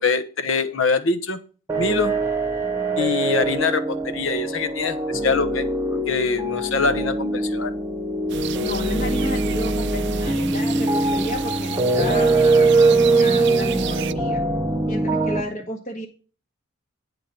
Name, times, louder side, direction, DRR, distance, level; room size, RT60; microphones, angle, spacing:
voice 1, 0.0-1.4 1.8-2.1 3.0-5.6 5.9-7.7, left 4 dB, 60° left, 11 dB, 1.0 m, -24 dB
sound 1, 1.7-15.4, right 2 dB, 15° right, 1.0 m, -22 dB
sound 2, 8.3-14.1, right 9 dB, 55° right, 0.4 m, -32 dB
voice 2, 8.6-14.4 14.9-16.1, left 1 dB, 35° left, -1 dB, 1.2 m, -32 dB
10.5 x 3.9 x 7.0 m, 0.36 s
head